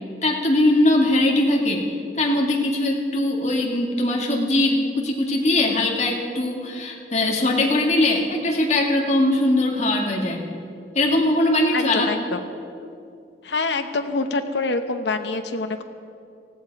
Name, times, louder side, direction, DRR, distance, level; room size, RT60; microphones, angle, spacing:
voice 1, 0.2-10.5 10.9-12.1, left 1 dB, 40° left, 0 dB, 2.0 m, -21 dB
voice 2, 11.7-12.4 13.4-15.8, left 3 dB, 85° left, 7 dB, 0.9 m, -26 dB
19.5 x 15.5 x 4.7 m, 2.6 s
head